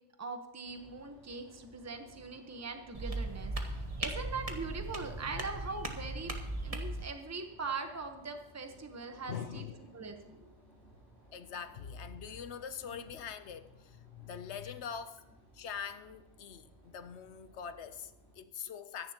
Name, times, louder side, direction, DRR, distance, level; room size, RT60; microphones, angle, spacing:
voice 1, 0.2-6.3 6.6-9.7 9.9-10.5 12.9-13.0, right 4 dB, 15° right, 1.0 m, -41 dB
sound 1, 0.6-18.4, right 1 dB, 65° right, 5.1 m, -60 dB
sound 2, 2.9-7.1, right 2 dB, 30° right, 1.3 m, -38 dB
voice 2, 9.3-10.0 11.3-15.2 15.5-19.1, left 7 dB, 70° left, 1.0 m, -43 dB
23.5 x 10.5 x 2.9 m
omnidirectional pair, 1.2 m